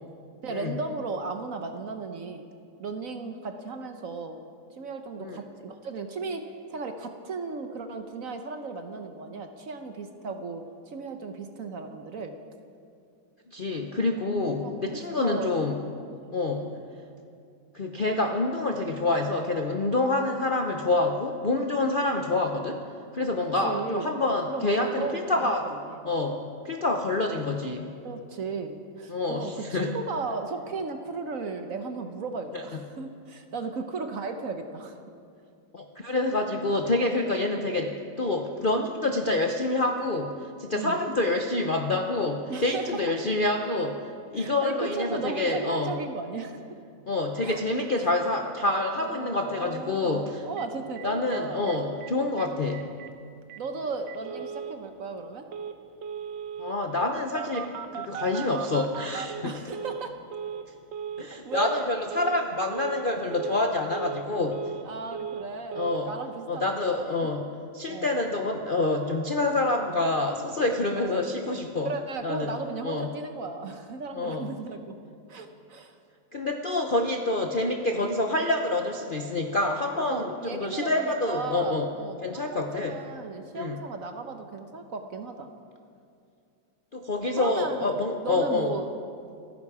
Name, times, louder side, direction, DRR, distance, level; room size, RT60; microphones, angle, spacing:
voice 1, 0.4-2.5 2.8-4.5 4.8-6.4 6.7-12.3 14.4-15.6 16.2-16.8 20.1-20.5 23.6-24.2 24.5-26.1 28.0-35.0 40.7-41.1 42.5-43.0 44.4-46.6 47.4-47.6 48.0-48.1 49.0-51.8 53.6-55.5 59.4-60.1 61.4-62.0 64.8-67.0 67.2-67.3 67.9-68.2 70.9-71.3 71.8-74.9 75.3-76.0 80.0-85.5 87.4-87.9 88.2-88.9, right 4 dB, 55° right, 6 dB, 1.1 m, -35 dB
voice 2, 13.5-15.8 16.3-16.7 17.7-22.8 23.1-25.7 26.0-27.9 29.1-30.0 32.5-32.6 35.7-44.0 44.3-46.0 47.1-50.5 51.0-52.9 56.6-59.5 61.2-64.7 65.7-66.1 66.5-67.5 67.7-71.9 72.2-72.6 72.8-73.1 74.1-74.5 76.3-81.9 82.2-83.0 83.5-83.8 86.9-88.7, left 2 dB, 45° left, 3 dB, 0.6 m, -27 dB
Telephone, 50.6-50.7 51.0-51.1 51.3-51.4 51.7-52.1 52.4-52.5 52.7-53.1 53.5-53.6 54.1-54.7 55.5-55.7 56.0-56.7 57.3-60.0 60.3-60.6 60.9-61.2 61.5-61.8 62.1-62.4 62.7-63.0 63.3-63.6 63.9-64.8 65.1-65.5 65.7-66.0, right 7 dB, 80° right, 1.5 m, -37 dB
28.0 x 10.5 x 4.9 m, 2.4 s
omnidirectional pair, 2.0 m